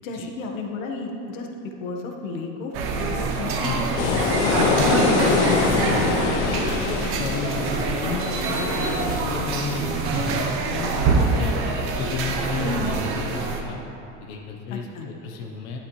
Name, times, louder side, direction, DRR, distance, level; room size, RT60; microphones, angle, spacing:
voice 1, 0.0-3.8 4.9-5.3 6.5-6.8 12.6-12.9 14.7-15.1, left 2 dB, 85° left, 2 dB, 1.4 m, -33 dB
sound 1, 2.7-13.6, right 3 dB, 35° right, 0.9 m, -25 dB
voice 2, 3.6-4.3 6.1-13.8 14.2-15.8, left 5 dB, 50° left, 0 dB, 1.0 m, -33 dB
sound 2, 4.0-10.1, left 4 dB, 70° left, 1.2 m, -24 dB
12.0 x 11.5 x 3.2 m, 2.9 s
supercardioid pair, 170°, 39 cm